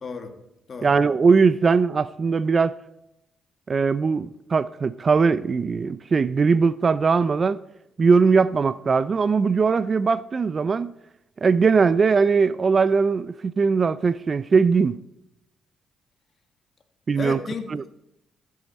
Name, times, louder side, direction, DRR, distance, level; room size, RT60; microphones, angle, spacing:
voice 1, 0.0-0.3 0.7-0.9 17.2-17.9, left 5 dB, 45° left, 1.8 m, -33 dB
voice 2, 0.8-2.8 3.7-7.6 8.0-10.9 11.4-15.0 17.1-17.4 17.7-17.8, right 5 dB, 40° right, 0.4 m, -20 dB
15.0 x 8.5 x 4.2 m
cardioid pair, 90°, 0 cm